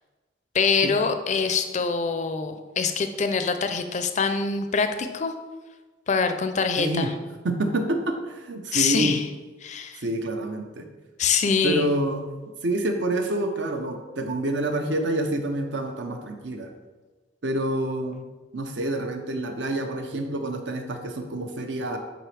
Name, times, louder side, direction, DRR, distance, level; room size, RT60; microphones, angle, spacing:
voice 1, 0.5-5.3 6.1-7.1 8.7-9.3 9.6-10.0 11.2-11.9, left 5 dB, 40° left, 8 dB, 0.4 m, -24 dB
voice 2, 6.8-7.1 7.4-9.2 10.0-10.9 11.6-12.3 12.6-16.7 17.4-18.2 18.5-22.0, right 1 dB, 70° right, 5 dB, 0.7 m, -27 dB
7.8 x 3.8 x 3.3 m, 1.3 s
head